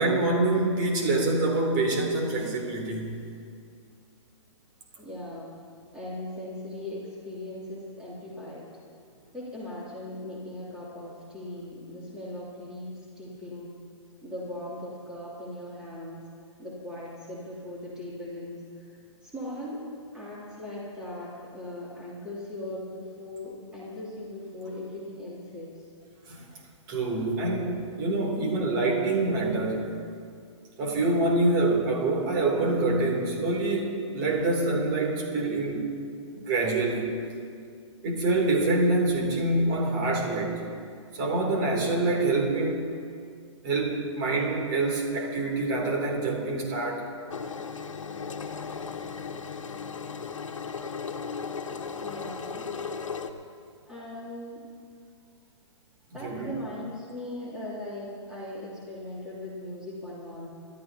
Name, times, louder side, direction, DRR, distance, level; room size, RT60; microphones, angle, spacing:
voice 1, 0.0-3.2 26.3-26.4 26.9-29.9 30.8-35.9 36.4-37.1 38.0-40.6 41.1-42.9 43.6-47.1 56.2-56.5, right 2 dB, 35° right, -1 dB, 3.0 m, -26 dB
voice 2, 5.0-5.5 5.9-8.7 9.3-13.8 14.2-16.3 16.6-19.0 19.2-19.8 20.1-25.9 52.0-52.8 53.9-54.7 56.1-60.5, left 1 dB, 5° right, -8 dB, 2.9 m, -39 dB
Engine, 47.3-53.3, left 5 dB, 90° left, 1.1 m, -36 dB
25.5 x 12.5 x 2.9 m, 2.3 s
hypercardioid pair, 145°, 16 cm